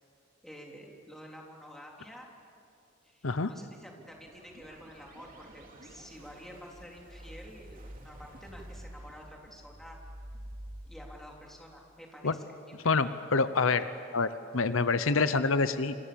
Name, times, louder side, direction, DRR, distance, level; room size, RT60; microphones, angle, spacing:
voice 1, 0.4-2.3 3.0-10.0 10.9-13.1, equal, ahead, -1 dB, 3.5 m, -50 dB
sound 1, 4.0-10.9, right 1 dB, 45° right, 3.0 m, -48 dB
voice 2, 12.8-13.9 14.1-16.0, left 4 dB, 80° left, 12 dB, 0.9 m, -27 dB
28.0 x 26.0 x 7.0 m, 2.5 s
head